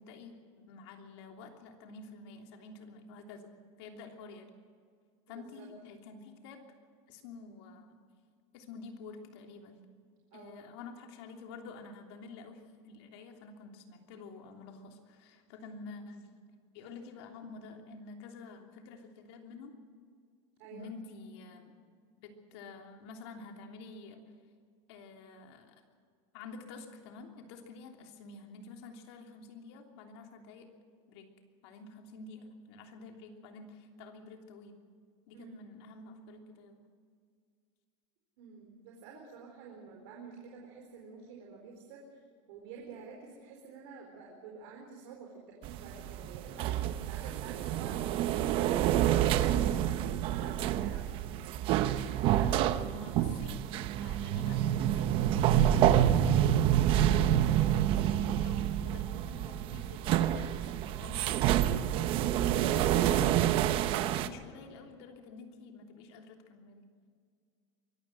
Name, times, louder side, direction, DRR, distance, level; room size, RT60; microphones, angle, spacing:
voice 1, 0.0-4.5 5.3-6.7 7.1-8.0 8.5-9.8 10.3-16.3 16.7-19.7 20.7-21.8 22.2-24.2 24.9-25.8 26.3-30.7 31.1-31.3 31.6-34.8 35.3-36.8 52.9-53.6 54.0-66.9, left 4 dB, 65° left, 3 dB, 3.2 m, -49 dB
voice 2, 5.3-5.7 10.3-10.6 15.6-15.8 20.6-20.9 35.3-35.6 38.4-42.2 42.5-48.0 48.4-51.4 52.0-52.6, right 5 dB, 60° right, 0 dB, 4.2 m, -49 dB
sound 1, 45.6-64.3, right 11 dB, 35° right, 0.8 m, -28 dB
24.0 x 14.5 x 7.8 m, 2.1 s
supercardioid pair, 170°, 15 cm